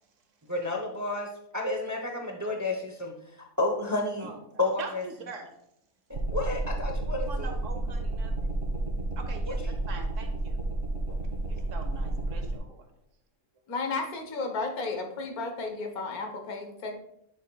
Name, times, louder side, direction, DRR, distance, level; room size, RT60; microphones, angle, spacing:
voice 1, 0.5-3.1 3.6-4.3 4.6-5.0 6.3-7.5 9.5-9.7, left 2 dB, 20° right, 2 dB, 0.5 m, -31 dB
voice 2, 4.2-5.5 7.3-8.6 9.2-10.6 11.5-12.9, right 4 dB, 60° right, 6 dB, 1.2 m, -43 dB
sound 1, 6.1-12.6, right 2 dB, 40° right, 1.6 m, -31 dB
voice 3, 13.7-16.9, left 3 dB, 85° left, 4 dB, 1.6 m, -33 dB
9.9 x 6.5 x 2.3 m, 0.77 s
omnidirectional pair, 1.5 m